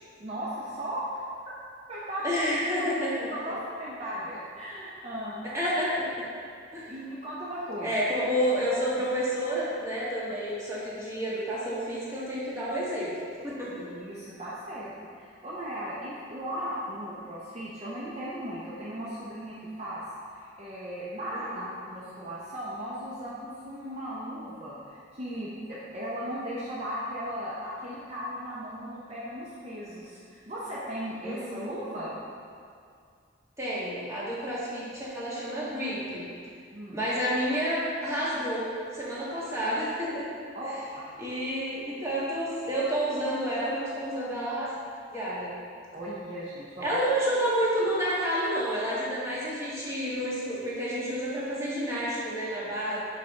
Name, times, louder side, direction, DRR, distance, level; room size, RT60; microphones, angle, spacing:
voice 1, 0.2-1.0 1.4-1.5 1.9-2.4 3.4-5.4 6.9-7.9 13.7-14.9 15.2-20.0 20.6-32.1 36.7-37.0 40.5-40.8 45.9-47.0, equal, 35° right, -8 dB, 0.7 m, -37 dB
voice 2, 2.2-3.3 5.5-6.2 6.7-6.9 7.8-13.1 13.4-13.7 21.3-21.6 31.2-31.6 33.6-36.3 36.9-38.7 38.9-40.3 40.6-40.8 41.2-44.7 45.1-45.5 46.8-53.0, equal, 15° right, -8 dB, 1.4 m, -29 dB
5.5 x 5.0 x 4.0 m, 2.3 s
head